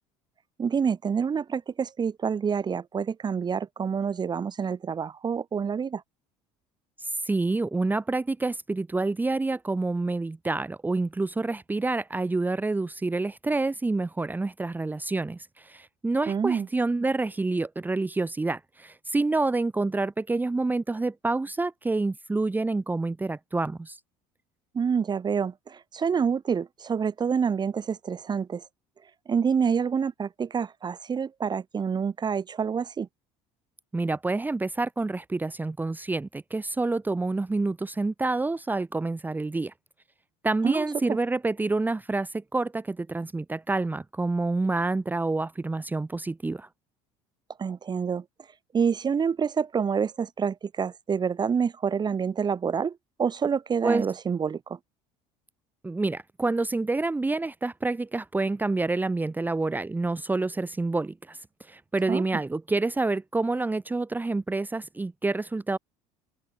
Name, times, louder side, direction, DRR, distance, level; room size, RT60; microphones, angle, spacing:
voice 1, 0.6-6.0 16.3-16.7 24.7-28.6 29.3-33.1 40.6-41.2 47.6-48.2 48.7-54.8 62.1-62.2, right 6 dB, 30° right, 2.6 m, -27 dB
voice 2, 7.0-24.0 33.9-39.7 40.4-46.7 53.8-54.1 55.8-65.8, right 3 dB, 15° right, 1.2 m, -28 dB
open air
supercardioid pair, 100°, 14 cm